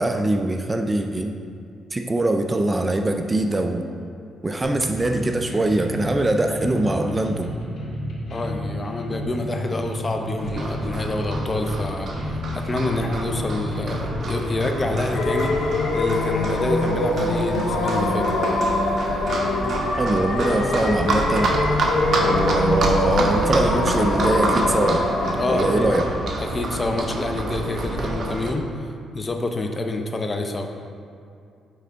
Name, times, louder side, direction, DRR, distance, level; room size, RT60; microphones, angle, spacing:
voice 1, 0.0-1.4 1.9-3.9 4.4-7.5 20.0-21.6 22.2-25.0 25.5-26.1, right 2 dB, 20° right, 5 dB, 0.3 m, -22 dB
sound 1, 4.6-15.8, left 1 dB, 60° left, 1.3 m, -31 dB
voice 2, 8.3-15.5 15.9-18.3 25.4-25.9 26.4-28.7 29.1-30.7, left 2 dB, 30° left, 4 dB, 0.6 m, -27 dB
Livestock farm animals working animals, 10.4-28.5, right 2 dB, 55° right, 0.8 m, -28 dB
sound 2, 15.1-26.1, left 2 dB, 80° left, 0.7 m, -24 dB
8.5 x 3.3 x 3.8 m, 2.4 s
cardioid pair, 90°, 0 cm